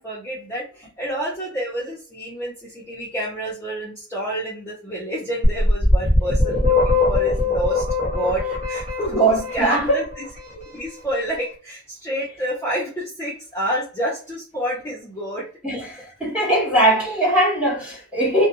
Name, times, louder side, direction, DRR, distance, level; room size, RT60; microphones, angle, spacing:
voice 1, 0.0-7.8 8.1-9.3 9.5-10.0 10.5-15.4 15.7-15.8, right 1 dB, 10° left, 0.6 m, -28 dB
sound 1, 5.4-10.3, left 3 dB, 35° right, 1.2 m, -21 dB
voice 2, 9.1-10.0 15.6-15.9 16.2-18.5, right 1 dB, 5° right, 1.1 m, -20 dB
2.3 x 2.1 x 2.9 m
head